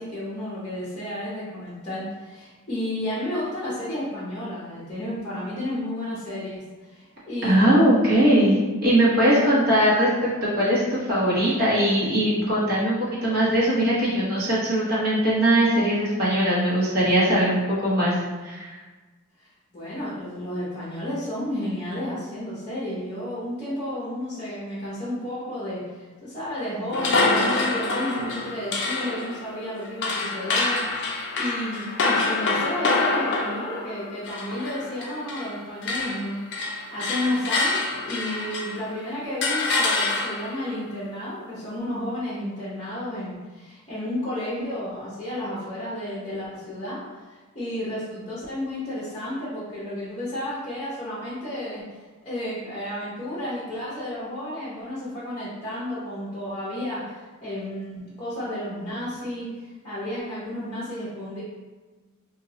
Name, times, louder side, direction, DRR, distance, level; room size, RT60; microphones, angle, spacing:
voice 1, 0.0-7.9 9.2-9.4 19.4-37.8 38.1-47.0 47.3-51.8 52.2-61.4, left 1 dB, 25° left, -9 dB, 0.8 m, -32 dB
voice 2, 7.4-18.7, right 1 dB, 40° right, -8 dB, 1.0 m, -21 dB
sound 1, 26.9-35.6 35.8-38.9 39.4-40.6, left 3 dB, 50° left, 0.4 m, -26 dB
2.7 x 2.2 x 3.8 m, 1.3 s
head